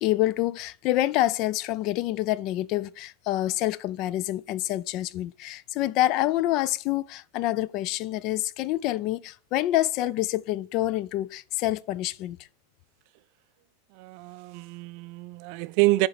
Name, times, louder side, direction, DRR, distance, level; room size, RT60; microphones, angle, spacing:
voice 1, 0.0-12.4, left 15 dB, 50° left, 0.3 m, -27 dB
voice 2, 14.0-16.1, right 21 dB, 55° right, 0.3 m, -26 dB
6.8 x 3.9 x 5.0 m
hypercardioid pair, 120°, 0 cm